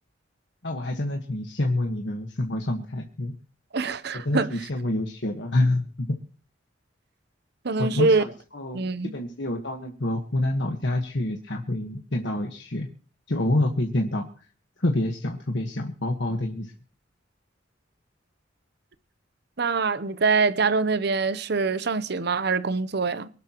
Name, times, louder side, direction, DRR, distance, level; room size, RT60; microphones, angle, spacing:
voice 1, 0.6-3.3 4.2-6.1 7.8-8.8 9.1-12.9 13.3-14.4 14.8-16.7, left 1 dB, 65° left, 1.5 m, -27 dB
voice 2, 3.7-4.5 7.6-8.2 8.7-9.1 19.6-23.3, right 4 dB, 60° right, 0.8 m, -24 dB
24.5 x 12.0 x 3.1 m
head